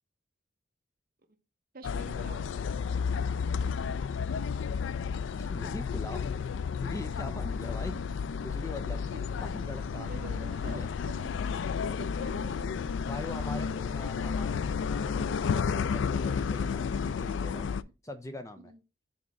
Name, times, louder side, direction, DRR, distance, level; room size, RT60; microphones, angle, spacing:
voice 1, 1.7-2.5 9.1-9.2 9.9-13.4 13.7-14.8 18.6-18.8, right 2 dB, 45° right, 1.0 m, -48 dB
sound 1, 1.8-17.8, left 6 dB, 70° left, 0.3 m, -32 dB
voice 2, 5.3-6.3 6.8-8.0 8.4-9.1 9.3-10.9 13.1-17.7 18.0-18.7, left 1 dB, 15° left, 0.5 m, -42 dB
6.2 x 4.2 x 4.7 m
head